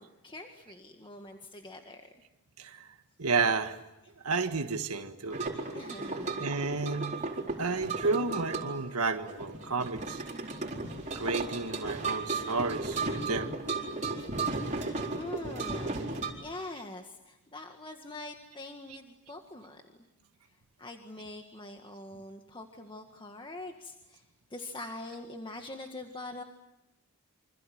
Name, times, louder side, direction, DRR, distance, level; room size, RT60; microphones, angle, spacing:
voice 1, 0.0-2.1 5.7-6.9 14.6-16.0 16.4-19.8 20.8-24.2 24.5-26.4, left 2 dB, 25° left, 4 dB, 1.9 m, -44 dB
voice 2, 2.6-2.9 3.2-3.8 4.2-5.4 6.4-7.1 7.6-10.2 11.2-13.6, right 4 dB, 85° right, 7 dB, 1.6 m, -31 dB
sound 1, 5.3-16.3, right 3 dB, 35° right, 4.4 m, -35 dB
28.0 x 26.0 x 7.9 m, 0.91 s
head